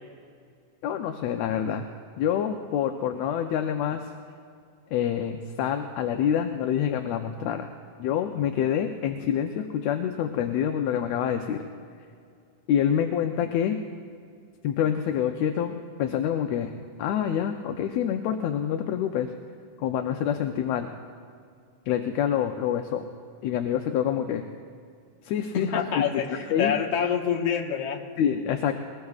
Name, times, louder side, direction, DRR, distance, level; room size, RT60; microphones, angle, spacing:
voice 1, 0.8-1.9 2.2-4.1 4.9-7.7 8.0-11.6 12.7-13.8 14.6-15.7 16.0-16.7 17.0-19.3 19.8-20.9 21.9-23.1 23.4-24.5 25.2-26.0 26.5-26.7 28.2-28.7, left 9 dB, 75° left, 5 dB, 1.8 m, -26 dB
voice 2, 25.5-28.0, left 7 dB, 60° left, 0 dB, 2.2 m, -27 dB
21.0 x 20.0 x 2.4 m, 2.3 s
omnidirectional pair, 3.4 m